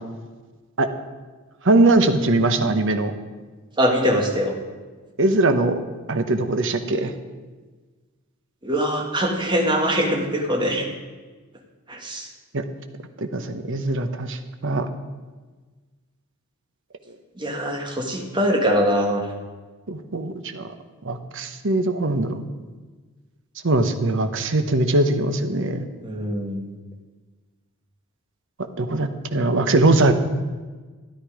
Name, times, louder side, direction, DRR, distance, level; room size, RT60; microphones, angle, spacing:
voice 1, 1.6-3.1 5.2-5.7 6.1-7.1 12.5-12.6 13.2-14.9 19.9-20.7 21.0-22.4 23.6-25.9 28.8-30.1, right 2 dB, 60° right, 8 dB, 1.0 m, -21 dB
voice 2, 3.8-4.6 8.6-10.9 11.9-12.3 17.4-19.2 26.0-26.6, equal, 20° right, 1 dB, 1.8 m, -22 dB
13.0 x 11.0 x 5.0 m, 1.3 s
head